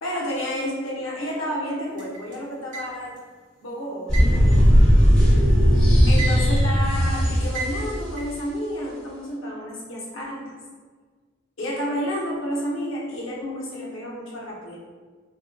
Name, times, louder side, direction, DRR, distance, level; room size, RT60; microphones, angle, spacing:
voice 1, 0.0-3.1 3.6-4.6 5.0-5.2 6.1-10.5 11.6-14.8, equal, 85° left, -4 dB, 0.8 m, -30 dB
sound 1, 2.0-3.3 4.1-5.5 5.9-6.8 7.5-8.4, right 4 dB, 40° right, 0.7 m, -34 dB
sound 2, 4.1-8.0, equal, 5° left, 1.0 m, -17 dB
2.3 x 2.1 x 3.8 m, 1.5 s
head